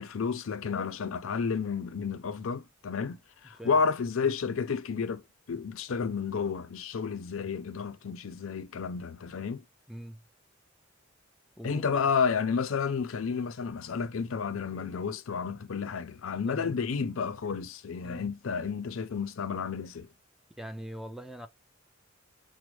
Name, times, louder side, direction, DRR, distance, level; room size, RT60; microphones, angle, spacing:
voice 1, 0.0-5.2 5.5-9.6 11.6-20.1, left 5 dB, 90° left, 0.5 m, -31 dB
voice 2, 9.9-10.2 11.6-12.1 16.5-16.7 18.0-18.3 20.6-21.5, right 1 dB, ahead, 0.4 m, -42 dB
6.0 x 2.0 x 3.1 m
head